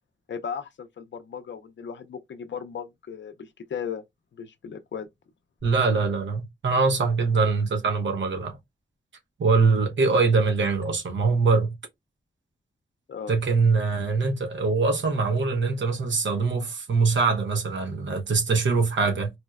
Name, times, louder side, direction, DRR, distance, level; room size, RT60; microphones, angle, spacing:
voice 1, 0.3-4.0 4.3-5.1 13.1-13.3, left 7 dB, 65° left, 0.5 m, -36 dB
voice 2, 5.6-8.6 9.4-11.7 13.3-19.3, right 4 dB, 70° right, 0.8 m, -23 dB
4.2 x 2.1 x 2.3 m
wide cardioid pair, 140°, 20 cm